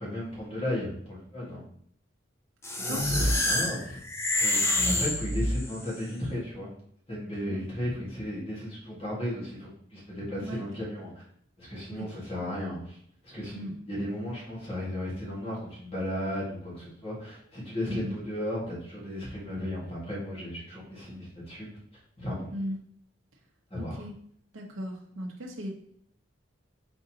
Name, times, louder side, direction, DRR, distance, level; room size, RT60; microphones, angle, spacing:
voice 1, 0.0-1.6 2.9-4.0 4.4-6.7 7.1-11.2 11.6-13.0 13.2-21.7 22.2-22.5 23.7-24.1, left 1 dB, 30° left, -6 dB, 1.7 m, -35 dB
sound 1, 2.6-5.9, left 1 dB, 15° left, 0.5 m, -27 dB
voice 2, 2.7-3.2 7.5-7.6 10.4-10.6 11.9-12.1 13.5-13.7 17.9-18.1 22.5-22.8 23.8-24.1 24.5-25.7, equal, 75° right, 0 dB, 0.8 m, -37 dB
4.4 x 3.8 x 2.8 m, 0.66 s
head